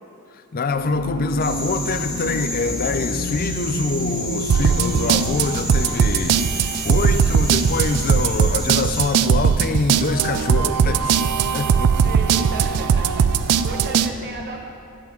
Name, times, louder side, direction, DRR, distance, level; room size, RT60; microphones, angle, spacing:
voice 1, 0.3-12.1, left 3 dB, 40° left, 0.5 m, -25 dB
sound 1, 0.7-5.7, equal, 65° left, 1.8 m, -30 dB
sound 2, 1.4-9.0, left 1 dB, 5° right, 2.1 m, -31 dB
sound 3, 4.5-14.1, right 7 dB, 85° right, 0.4 m, -19 dB
voice 2, 12.0-14.6, right 2 dB, 45° right, 1.4 m, -34 dB
11.0 x 5.9 x 7.8 m
head